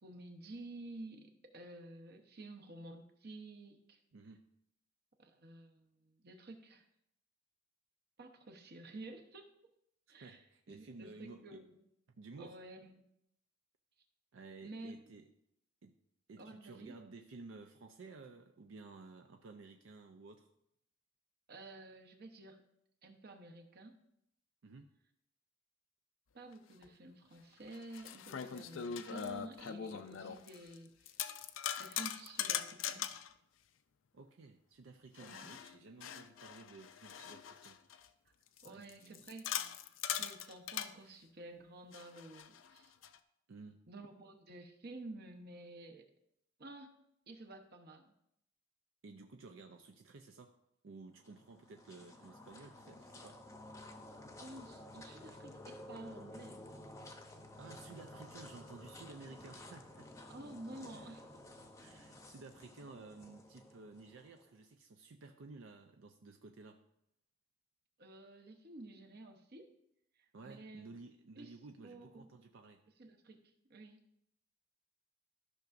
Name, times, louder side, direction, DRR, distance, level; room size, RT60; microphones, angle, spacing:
voice 1, 0.0-4.0 5.2-6.9 8.2-9.5 10.1-10.4 10.7-11.8 12.4-13.1 14.6-15.1 16.4-16.9 21.5-22.6 23.0-23.9 26.3-31.1 31.8-33.1 35.2-35.5 38.6-39.5 40.1-42.9 43.9-46.1 46.6-48.1 54.4-56.6 60.3-61.3 68.0-69.7 70.4-70.9 71.4-71.5 71.8-72.3 73.0-73.4 73.7-74.0, right 2 dB, 55° right, 4 dB, 0.9 m, -51 dB
voice 2, 4.1-4.5 10.2-11.6 12.1-12.6 14.3-15.3 15.8-15.9 16.3-20.5 24.6-24.9 34.1-37.8 38.6-39.2 43.5-43.8 49.0-50.6 50.8-53.7 57.6-60.1 60.9-61.1 61.8-66.8 70.3-72.8, right 3 dB, 80° right, 5 dB, 0.5 m, -54 dB
sound 1, 26.8-26.9 27.7-30.8 31.1-33.3 35.2-38.1 38.6-40.9 41.9-43.2, left 9 dB, 75° left, 0.4 m, -41 dB
sound 2, 51.2-64.5, left 1 dB, 15° left, 0.7 m, -53 dB
13.5 x 5.8 x 2.6 m, 0.77 s
head